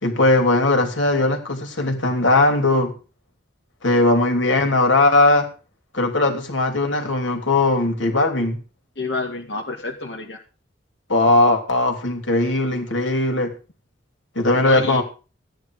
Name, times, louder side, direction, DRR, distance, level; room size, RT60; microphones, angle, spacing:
voice 1, 0.0-2.9 3.8-5.5 5.9-8.6 11.1-13.5 14.3-15.0, left 2 dB, 90° left, 5 dB, 3.1 m, -19 dB
voice 2, 9.0-10.4 14.6-15.0, left 3 dB, 65° left, -1 dB, 2.2 m, -29 dB
15.5 x 10.0 x 4.9 m, 0.34 s
head